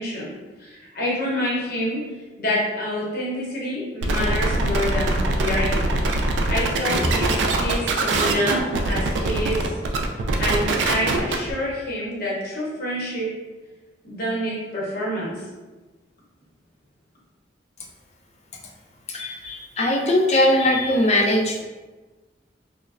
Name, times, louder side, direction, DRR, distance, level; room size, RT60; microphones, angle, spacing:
voice 1, 0.0-2.0 2.4-5.9 6.5-9.7 10.4-13.3 14.0-15.4, equal, 60° left, -5 dB, 0.8 m, -27 dB
sound 1, 4.0-11.5, right 2 dB, 85° right, 0.3 m, -23 dB
Bass drum, 7.0-8.4, equal, 15° right, 0.7 m, -30 dB
voice 2, 19.1-21.6, left 1 dB, 40° left, 0 dB, 0.4 m, -20 dB
3.1 x 2.1 x 2.4 m, 1.2 s
head